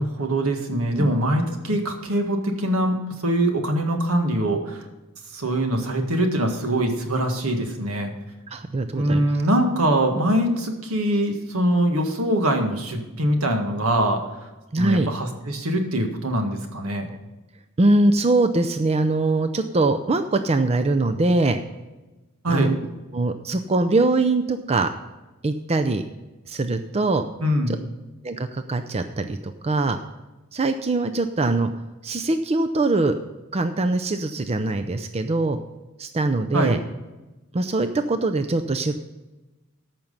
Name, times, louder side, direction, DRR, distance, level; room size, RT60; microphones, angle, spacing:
voice 1, 0.0-4.9 5.3-8.1 8.9-14.2 14.8-17.1 22.4-22.7 27.4-27.8 36.5-36.8, right 1 dB, 80° right, 4 dB, 1.8 m, -23 dB
voice 2, 8.5-9.3 14.7-15.1 17.1-17.2 17.8-21.6 22.5-22.8 23.1-24.9 25.4-26.0 26.5-27.2 27.7-27.8 28.2-30.0 30.5-31.7 32.0-33.1 33.5-35.6 36.0-36.8 37.5-39.1, right 2 dB, 30° right, 8 dB, 0.5 m, -22 dB
14.0 x 5.9 x 5.5 m, 1.1 s
head